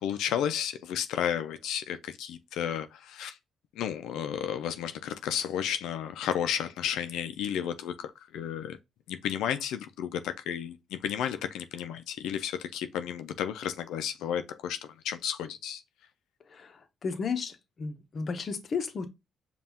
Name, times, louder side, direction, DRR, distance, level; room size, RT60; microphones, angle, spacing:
voice 1, 0.0-3.4 3.8-8.8 9.1-14.8 15.0-15.8, left 9 dB, 85° left, 0.3 m, -32 dB
voice 2, 16.5-19.1, left 5 dB, 45° left, 0.7 m, -34 dB
5.3 x 2.3 x 2.8 m
cardioid pair, 90°, 0 cm